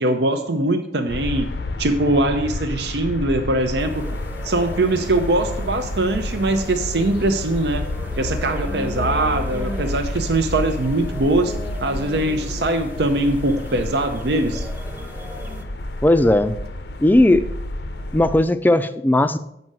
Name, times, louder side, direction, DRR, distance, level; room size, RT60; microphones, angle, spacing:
voice 1, 0.0-1.5 1.8-4.1 4.4-7.8 8.2-11.5 11.8-14.7, right 2 dB, 75° right, 6 dB, 0.7 m, -21 dB
sound 1, 1.1-18.4, left 1 dB, 75° left, 0.6 m, -30 dB
sound 2, 3.8-15.6, equal, 10° right, 0.8 m, -38 dB
voice 2, 16.0-16.5 17.0-17.5 18.1-19.4, left 1 dB, 10° left, 12 dB, 0.3 m, -16 dB
7.8 x 5.4 x 6.1 m, 0.78 s
head